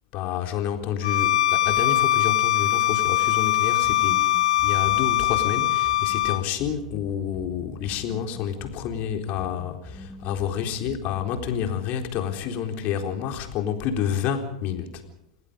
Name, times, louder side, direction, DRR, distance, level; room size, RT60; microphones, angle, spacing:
voice 1, 0.1-15.0, left 9 dB, 45° left, 5 dB, 3.9 m, -29 dB
Bowed string instrument, 1.0-6.4, left 13 dB, 70° left, 0.9 m, -22 dB
sound 1, 3.8-11.9, left 2 dB, 5° left, 3.9 m, -44 dB
28.5 x 19.0 x 5.2 m, 0.80 s
hypercardioid pair, 100°, 4 cm